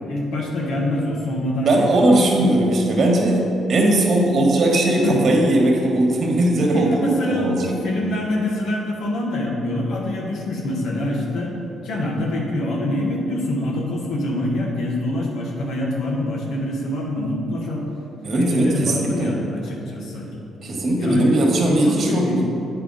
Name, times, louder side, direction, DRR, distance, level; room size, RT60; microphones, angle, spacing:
voice 1, 0.1-2.4 5.0-5.2 6.7-7.5 7.8-11.5 11.8-17.8 18.4-20.3 21.0-22.4, left 1 dB, 80° left, -2 dB, 1.1 m, -25 dB
voice 2, 1.6-7.7 18.2-19.3 20.6-22.3, right 1 dB, 50° right, -1 dB, 1.3 m, -19 dB
8.4 x 4.5 x 3.9 m, 2.8 s
cardioid pair, 90°, 0 cm